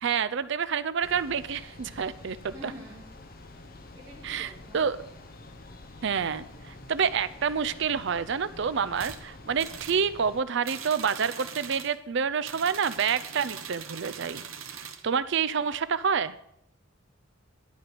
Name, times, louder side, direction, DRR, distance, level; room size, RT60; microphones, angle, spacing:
voice 1, 0.0-2.7 4.2-5.0 6.0-14.4 14.8-16.4, right 6 dB, 60° right, 14 dB, 0.5 m, -28 dB
sound 1, 1.0-10.4, left 2 dB, 45° left, 1.1 m, -48 dB
voice 2, 2.5-3.1 3.9-4.8, equal, 20° right, -7 dB, 2.4 m, -46 dB
sound 2, 9.0-9.2 9.6-10.0 10.6-11.9 12.4-15.0, right 7 dB, 90° right, 1.1 m, -41 dB
11.5 x 5.1 x 7.7 m, 0.75 s
head